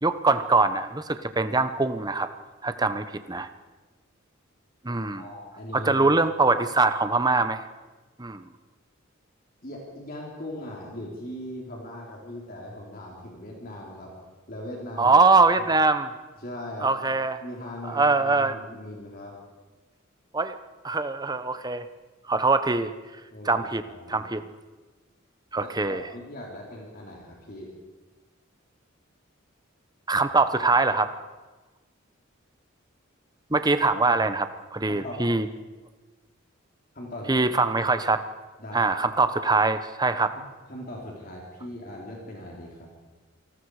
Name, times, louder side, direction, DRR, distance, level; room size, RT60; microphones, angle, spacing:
voice 1, 0.0-2.3 2.6-3.5 4.8-5.2 5.7-7.6 8.2-8.4 15.0-16.1 16.8-17.4 17.9-18.5 20.3-20.6 20.8-21.9 22.3-22.9 23.4-23.8 24.1-24.4 25.5-26.0 30.1-31.1 33.5-34.5 34.7-35.5 37.3-38.2 38.7-40.3, right 3 dB, 20° right, 10 dB, 1.0 m, -23 dB
voice 2, 5.1-6.1 9.6-15.2 15.6-15.7 16.4-17.1 17.4-19.4 23.3-24.3 25.6-27.7 34.1-34.2 34.9-35.2 36.9-37.4 38.6-38.9 40.7-42.9, left 1 dB, 45° left, -2 dB, 3.9 m, -39 dB
28.0 x 19.0 x 4.9 m, 1.2 s
head